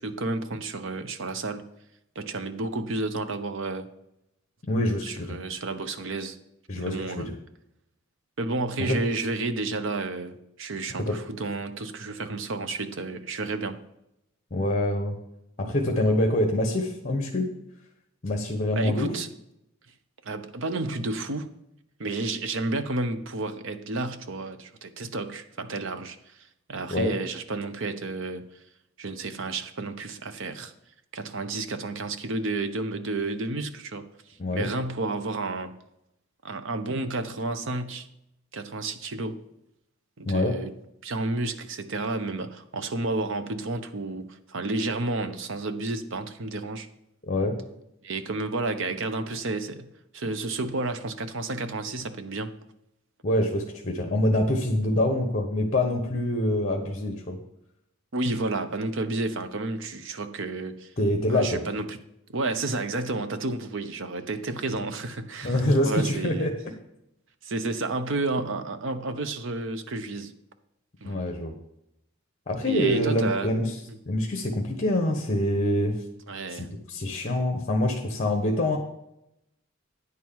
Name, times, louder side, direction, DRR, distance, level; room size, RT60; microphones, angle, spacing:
voice 1, 0.0-1.6 2.1-3.9 5.0-6.4 6.8-7.3 8.4-13.8 15.6-15.7 18.7-19.3 20.2-21.5 22.0-26.4 26.7-28.4 29.0-30.7 31.1-35.7 36.4-38.1 38.5-39.4 40.2-40.7 41.0-46.9 48.0-52.5 58.1-60.9 61.3-62.0 62.3-66.5 67.4-70.3 71.0-71.2 72.6-73.5 73.9-74.0 76.3-76.7, right 2 dB, 65° right, 0.9 m, -31 dB
voice 2, 4.7-5.4 6.7-7.3 8.8-9.0 11.1-11.2 14.5-15.1 15.6-17.5 18.2-19.1 26.9-27.1 34.4-34.7 40.3-40.6 47.3-47.5 53.2-57.4 61.0-61.6 65.4-66.5 71.0-71.5 72.5-73.7 74.1-76.0 76.5-78.8, left 1 dB, 35° left, 1.1 m, -25 dB
9.9 x 4.7 x 7.3 m
head